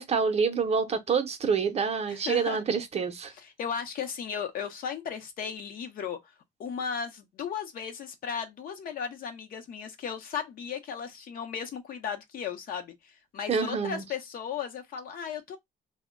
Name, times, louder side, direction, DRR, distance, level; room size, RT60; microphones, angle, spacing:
voice 1, 0.0-3.3 13.5-14.0, right 5 dB, 40° right, 0.6 m, -27 dB
voice 2, 2.1-2.6 3.4-6.2 6.6-15.6, left 7 dB, 60° left, 0.7 m, -36 dB
2.1 x 2.1 x 3.6 m
cardioid pair, 110°, 17 cm